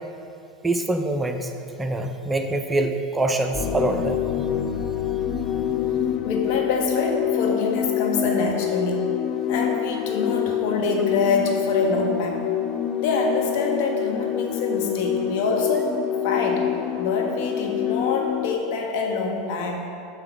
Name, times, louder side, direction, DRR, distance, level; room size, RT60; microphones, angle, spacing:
voice 1, 0.6-1.5 1.8-4.2, right 2 dB, 15° right, 5 dB, 0.6 m, -24 dB
sound 1, 3.5-18.6, left 10 dB, 40° left, 0.6 m, -26 dB
voice 2, 6.2-9.1 9.5-12.5 13.0-16.0 16.2-16.7 17.0-19.9, left 3 dB, 60° left, 1 dB, 1.3 m, -25 dB
6.8 x 5.8 x 5.9 m, 2.8 s
hypercardioid pair, 85°, 0 cm